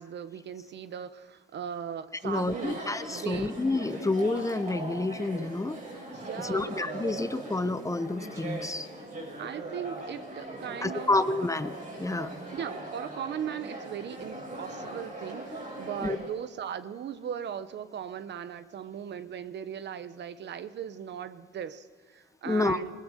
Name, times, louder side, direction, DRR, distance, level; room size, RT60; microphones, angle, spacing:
voice 1, 0.0-2.8 3.1-3.6 6.1-6.8 9.4-11.1 12.5-22.9, right 8 dB, 60° right, 13 dB, 1.0 m, -38 dB
voice 2, 2.2-5.8 6.4-8.9 10.8-12.3 16.0-16.2 22.4-22.8, left 2 dB, 15° left, 12 dB, 0.9 m, -29 dB
Chatter, 2.2-16.3, right 2 dB, 45° right, 7.4 m, -40 dB
21.0 x 19.0 x 6.7 m, 1.5 s
cardioid pair, 90°, 20 cm